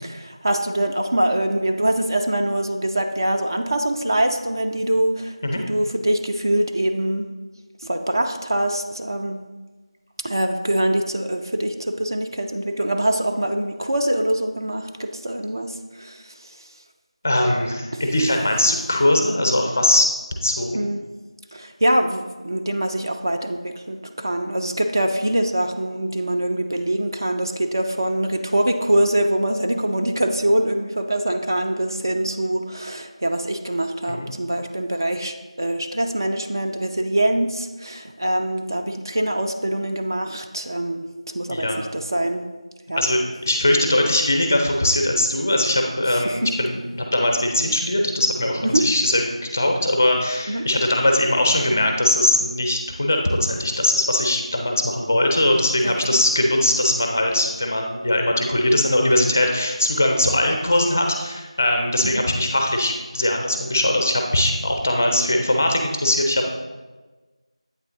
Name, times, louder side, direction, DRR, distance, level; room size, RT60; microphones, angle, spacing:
voice 1, 0.0-7.3 7.8-9.4 10.2-16.3 17.9-18.0 20.7-21.0 21.5-41.1 41.3-42.5 42.9-43.0 46.1-46.5 48.6-48.8 50.5-50.7 55.8-56.2 62.1-62.3, right 1 dB, 35° right, 4 dB, 0.4 m, -24 dB
voice 2, 17.2-20.1 20.4-20.9 34.1-34.3 41.5-41.8 43.0-66.5, left 1 dB, 25° left, 3 dB, 0.4 m, -21 dB
8.2 x 3.3 x 3.8 m, 1.2 s
figure-of-eight pair, 170°, 3 cm